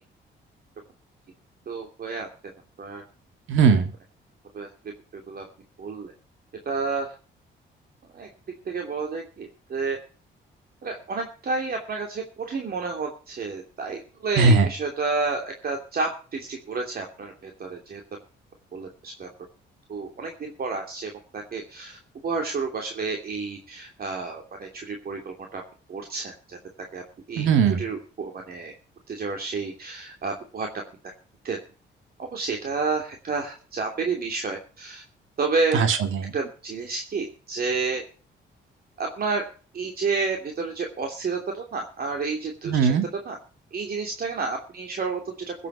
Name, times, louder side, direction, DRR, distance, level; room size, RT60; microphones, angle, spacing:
voice 1, 1.7-2.3 2.8-3.0 4.5-4.7 5.1-5.4 5.8-6.1 6.6-7.1 8.1-8.3 8.6-10.0 10.8-18.0 18.7-19.3 19.9-25.6 25.9-26.6 26.9-27.0 27.3-27.4 27.8-28.7 29.1-30.7 31.4-31.6 32.2-35.0 35.4-35.9 36.3-38.0 39.0-39.4 39.7-42.9 43.3-43.4 43.7-45.5, right 4 dB, 50° right, 2 dB, 3.0 m, -30 dB
voice 2, 3.5-3.9 14.4-14.7 27.4-27.9 35.7-36.3 42.6-43.1, right 5 dB, 80° right, 8 dB, 2.4 m, -19 dB
16.0 x 8.4 x 5.8 m, 0.38 s
cardioid pair, 90°, 20 cm